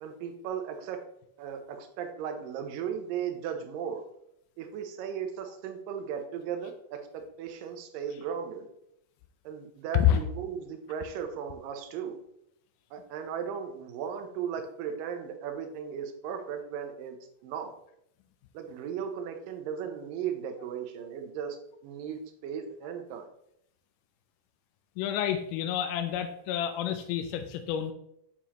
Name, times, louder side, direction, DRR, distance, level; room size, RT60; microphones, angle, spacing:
voice 1, 0.0-1.0 1.4-4.0 4.6-8.7 9.5-12.2 12.9-17.2 17.4-17.7 18.5-21.6 21.8-23.3, right 8 dB, 75° right, 6 dB, 2.3 m, -36 dB
voice 2, 25.0-27.9, left 10 dB, 80° left, 6 dB, 1.9 m, -28 dB
7.1 x 6.7 x 2.9 m, 0.77 s
omnidirectional pair, 4.2 m